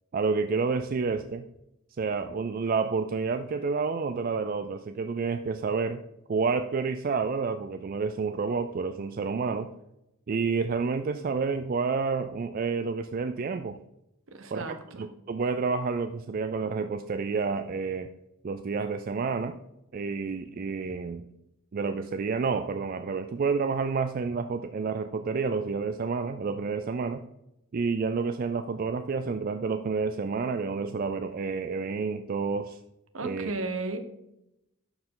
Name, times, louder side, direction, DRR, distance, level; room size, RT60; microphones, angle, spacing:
voice 1, 0.1-1.4 2.0-6.0 6.3-9.7 10.3-13.8 14.5-18.1 18.4-19.6 19.9-21.2 21.7-27.2 27.7-32.8 33.2-33.5, right 4 dB, 45° right, 9 dB, 0.3 m, -29 dB
voice 2, 14.3-15.1 33.1-34.0, right 2 dB, 70° right, 8 dB, 1.0 m, -34 dB
12.0 x 4.8 x 3.8 m, 0.87 s
head